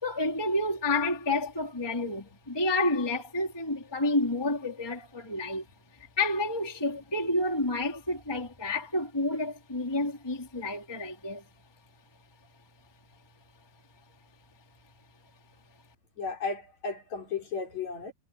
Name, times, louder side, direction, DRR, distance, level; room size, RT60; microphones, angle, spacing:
voice 1, 0.0-5.6 6.2-11.4, left 2 dB, 5° left, 2.8 m, -29 dB
voice 2, 16.2-18.1, left 4 dB, 45° left, 5.8 m, -34 dB
omnidirectional pair, 4.5 m